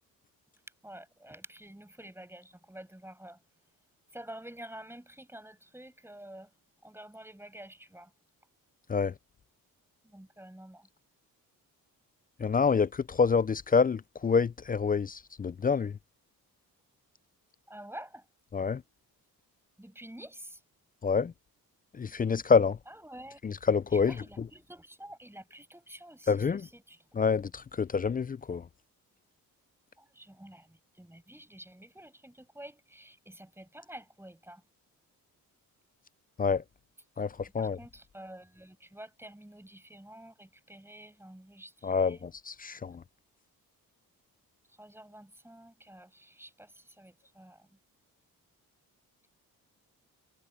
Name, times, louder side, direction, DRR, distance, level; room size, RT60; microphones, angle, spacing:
voice 1, 0.8-3.4 4.1-6.5 6.8-8.1 10.0-10.9 17.7-18.3 19.8-20.6 22.9-23.4 23.9-27.0 30.0-34.6 37.6-42.2 44.7-47.8, right 1 dB, 5° right, 6.1 m, -49 dB
voice 2, 12.4-15.9 18.5-18.8 21.0-21.3 22.0-22.8 23.4-24.1 26.3-26.7 27.1-28.6 36.4-36.6 37.2-37.8 41.8-43.0, left 5 dB, 25° left, 0.4 m, -27 dB
cardioid pair, 85°, 36 cm